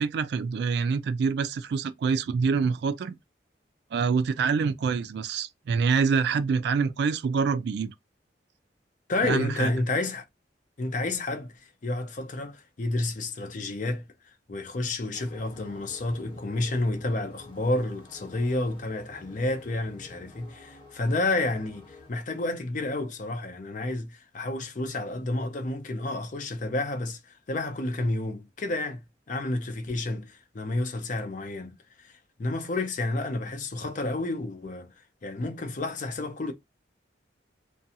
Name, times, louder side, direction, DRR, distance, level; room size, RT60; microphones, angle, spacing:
voice 1, 0.0-3.1 3.9-7.9 9.2-9.7, right 5 dB, 65° right, 0.3 m, -26 dB
voice 2, 9.1-10.2 10.8-11.5 11.8-14.1 14.5-32.1 32.4-34.9 35.2-36.5, left 2 dB, 45° left, 0.5 m, -30 dB
sound 1, 15.1-22.1, left 2 dB, 30° left, 1.1 m, -50 dB
2.5 x 2.2 x 2.7 m
head